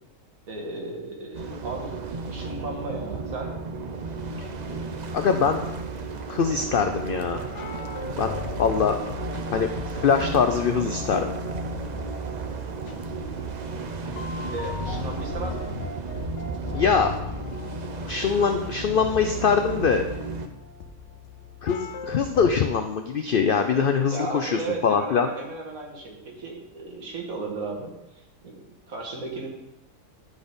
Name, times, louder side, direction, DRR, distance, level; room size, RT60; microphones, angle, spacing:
voice 1, 0.5-2.0 2.3-3.5 14.5-15.8 24.1-27.9 28.4-29.5, right 3 dB, 70° right, 0 dB, 1.9 m, -35 dB
sound 1, 1.3-20.5, right 4 dB, 55° right, 0.5 m, -34 dB
voice 2, 5.1-5.6 6.3-7.4 8.2-9.0 9.5-11.3 16.7-17.1 18.1-20.1 21.6-25.3, left 6 dB, 85° left, 6 dB, 0.4 m, -23 dB
sound 2, 7.5-22.5, left 6 dB, 60° left, 0.9 m, -38 dB
11.0 x 4.2 x 5.1 m, 0.89 s
omnidirectional pair, 1.6 m